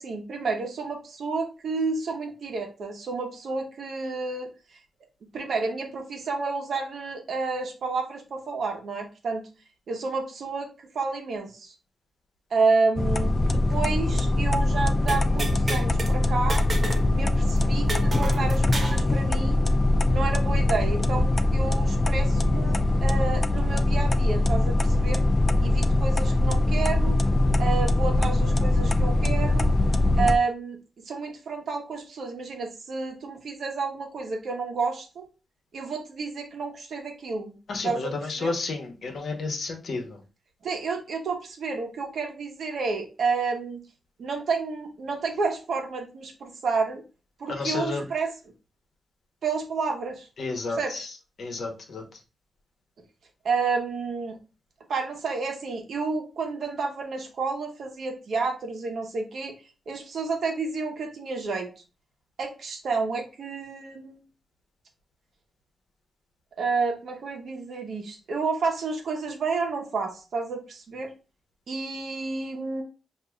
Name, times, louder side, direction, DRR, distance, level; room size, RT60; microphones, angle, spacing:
voice 1, 0.0-4.5 5.3-9.5 9.9-11.7 12.5-16.6 17.1-19.6 20.1-25.2 25.6-27.2 27.6-29.7 30.2-35.2 35.7-37.6 37.8-38.1 38.4-38.5 40.6-43.8 44.2-47.0 47.4-48.3 49.4-50.3 50.7-51.0 53.4-54.4 54.9-59.6 59.9-61.7 62.4-64.2 66.6-71.1 71.7-72.8, right 4 dB, 65° right, 2 dB, 1.0 m, -30 dB
sound 1, 13.0-30.4, left 2 dB, 25° left, 0.3 m, -22 dB
sound 2, 15.1-16.1 16.5-17.1 17.3-17.4 17.9-19.0, right 2 dB, 30° right, 0.9 m, -32 dB
voice 2, 37.7-40.2 47.5-48.0 50.4-51.1 51.4-52.0, left 3 dB, 60° left, 3 dB, 1.0 m, -31 dB
6.4 x 2.7 x 2.3 m, 0.31 s
wide cardioid pair, 145°, 0 cm